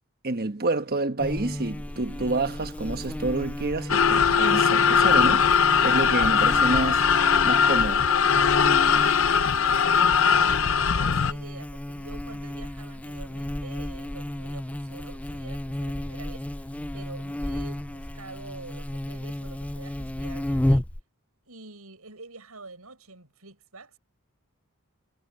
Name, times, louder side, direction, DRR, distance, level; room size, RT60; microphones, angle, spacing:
voice 1, 0.2-7.1 7.4-8.1, right 2 dB, 45° right, 1.3 m, -28 dB
Buzz, 1.2-21.0, left 1 dB, 5° left, 0.4 m, -33 dB
sound 1, 3.9-11.3, left 6 dB, 65° left, 0.7 m, -20 dB
voice 2, 8.7-20.9 21.5-24.0, right 3 dB, 80° right, 7.4 m, -47 dB
head